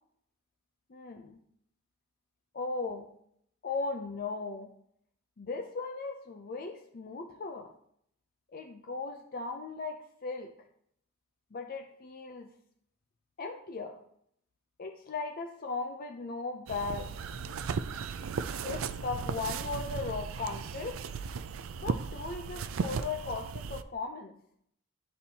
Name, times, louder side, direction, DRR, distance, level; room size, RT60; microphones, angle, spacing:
voice 1, 0.9-1.4 2.5-3.1 3.6-4.7 5.4-7.7 8.5-10.5 11.5-12.5 13.4-14.0 14.8-17.1 18.6-21.0 21.8-24.4, left 4 dB, 45° left, 5 dB, 0.5 m, -37 dB
sound 1, 16.7-23.8, right 5 dB, 75° right, 0.4 m, -36 dB
11.5 x 4.3 x 2.8 m, 0.69 s
head